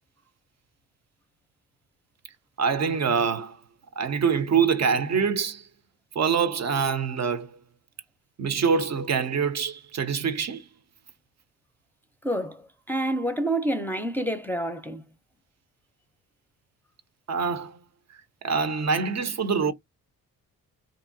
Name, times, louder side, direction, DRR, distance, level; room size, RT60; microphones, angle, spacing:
voice 1, 2.6-3.6 4.0-5.6 6.1-7.6 8.4-10.6 17.3-17.8 18.4-19.7, right 6 dB, 50° right, 0.6 m, -25 dB
voice 2, 12.2-15.0, right 1 dB, 5° left, 0.6 m, -28 dB
2.9 x 2.5 x 2.7 m
cardioid pair, 70°, 35 cm